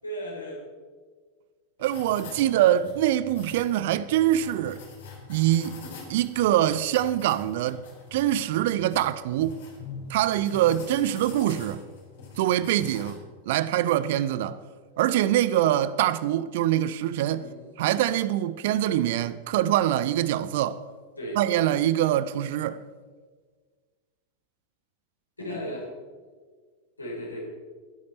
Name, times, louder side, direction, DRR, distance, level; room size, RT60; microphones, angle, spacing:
voice 1, 0.0-0.6 17.4-17.6 21.2-21.5 25.4-25.8 27.0-27.4, equal, 80° left, 4.1 m, -35 dB
sound 1, 1.8-13.1, left 4 dB, 60° left, 3.6 m, -45 dB
voice 2, 1.8-4.8 5.3-5.8 6.1-7.8 8.1-9.6 10.1-11.8 12.4-13.2 13.5-14.6 15.0-17.5 17.8-20.8 21.4-22.8, right 12 dB, 50° right, 0.6 m, -24 dB
20.5 x 8.6 x 4.3 m
figure-of-eight pair, 90°, 0 cm